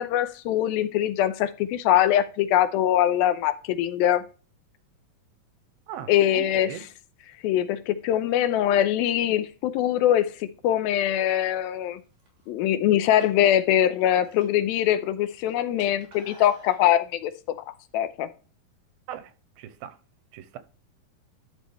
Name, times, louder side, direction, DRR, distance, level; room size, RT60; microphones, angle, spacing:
voice 1, 0.0-4.2 6.1-6.7 7.4-12.0 12.5-17.6 17.9-18.3, left 11 dB, 90° left, 2.5 m, -23 dB
voice 2, 5.9-6.8 19.1-20.0 20.3-20.6, right 11 dB, 85° right, 2.5 m, -40 dB
sound 1, 12.0-12.5 13.0-14.9 15.2-16.8, equal, 45° right, 4.4 m, -49 dB
12.5 x 5.2 x 3.2 m
omnidirectional pair, 4.2 m